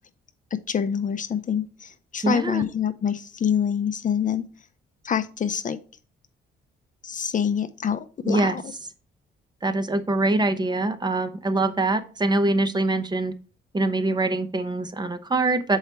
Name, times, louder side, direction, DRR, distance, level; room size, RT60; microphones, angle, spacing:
voice 1, 0.5-4.4 5.0-5.8 7.0-8.7, left 8 dB, 40° left, 10 dB, 0.6 m, -26 dB
voice 2, 2.2-2.6 8.2-8.6 9.6-13.3 13.7-15.8, right 2 dB, 20° right, 9 dB, 0.8 m, -24 dB
6.5 x 4.8 x 4.4 m, 0.37 s
cardioid pair, 90°, 20 cm